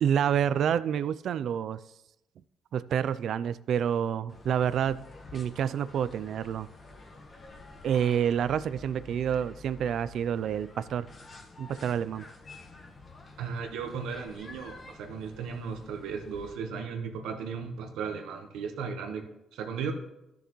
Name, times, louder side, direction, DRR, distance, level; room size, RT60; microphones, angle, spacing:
voice 1, 0.0-1.8 2.7-6.7 7.8-11.1 11.6-12.3, right 8 dB, 70° right, 0.4 m, -28 dB
sound 1, 4.3-16.5, left 3 dB, 40° left, 1.4 m, -49 dB
voice 2, 13.4-19.9, right 6 dB, 85° right, 1.2 m, -36 dB
13.5 x 6.7 x 3.1 m
cardioid pair, 90°, 0 cm